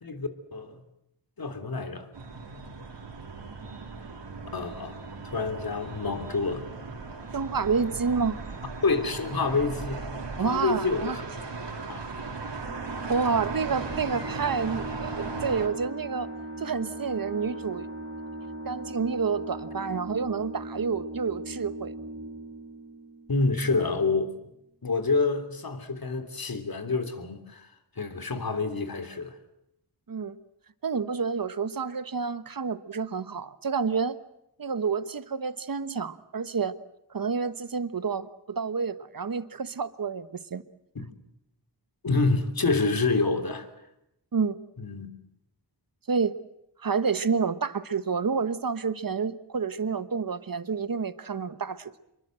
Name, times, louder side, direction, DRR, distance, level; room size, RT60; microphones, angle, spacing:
voice 1, 0.0-0.7 1.4-2.1 4.5-5.0 5.2-6.7 8.8-10.0 10.4-11.2 11.9-12.0 23.3-24.3 24.8-27.7 28.0-29.3 40.9-41.1 42.0-43.7 44.8-45.1, left 3 dB, 55° left, 3.2 m, -27 dB
sound 1, 2.1-15.7, right 4 dB, 75° right, 4.5 m, -38 dB
voice 2, 7.3-8.3 10.4-11.2 13.1-16.3 16.6-17.9 18.6-21.9 30.1-30.4 30.8-34.2 34.6-36.8 37.1-40.6 44.3-44.6 46.1-46.3 46.8-51.9, right 5 dB, 50° right, 1.3 m, -29 dB
sound 2, 12.7-24.0, right 1 dB, 30° right, 3.7 m, -39 dB
26.5 x 23.0 x 7.7 m
wide cardioid pair, 90°, 43 cm